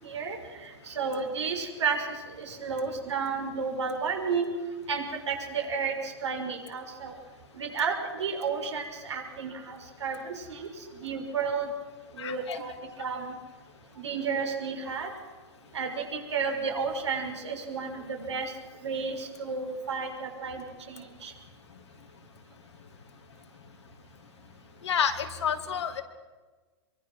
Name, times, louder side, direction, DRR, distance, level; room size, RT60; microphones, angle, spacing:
voice 1, 0.0-4.5 4.9-7.1 7.5-11.7 12.1-12.7 13.0-13.3 14.0-15.1 15.7-18.5 18.8-21.3, right 5 dB, 80° right, 3 dB, 5.9 m, -32 dB
voice 2, 12.2-12.6 24.8-26.0, left 7 dB, 75° left, 6 dB, 2.5 m, -29 dB
24.5 x 23.5 x 6.3 m, 1.3 s
hypercardioid pair, 120°, 15 cm